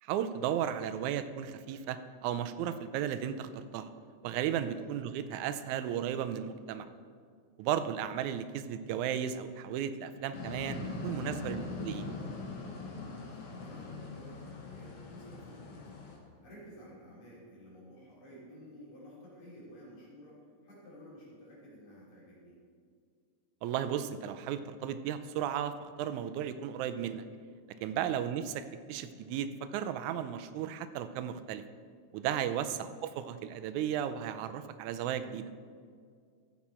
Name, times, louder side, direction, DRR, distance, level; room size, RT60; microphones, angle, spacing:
voice 1, 0.0-3.9 4.2-6.9 7.6-12.1 23.6-27.2 27.8-31.6 32.1-35.5, right 9 dB, 90° right, 11 dB, 2.0 m, -35 dB
sound 1, 10.3-16.2, left 3 dB, 60° left, 2.2 m, -41 dB
voice 2, 13.2-15.9 16.4-22.6 27.9-28.1 32.4-32.8, equal, 75° left, -6 dB, 4.8 m, -53 dB
15.0 x 7.2 x 4.3 m, 2.1 s
omnidirectional pair, 3.3 m